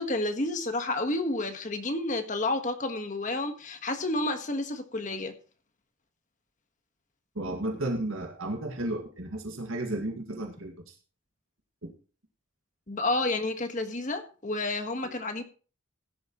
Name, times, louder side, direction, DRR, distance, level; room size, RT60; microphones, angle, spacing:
voice 1, 0.0-5.3 12.9-15.4, left 2 dB, 35° left, 7 dB, 1.4 m, -30 dB
voice 2, 7.4-10.9 11.8-11.9, right 1 dB, 75° right, 1 dB, 2.0 m, -33 dB
16.0 x 11.0 x 3.1 m, 0.37 s
head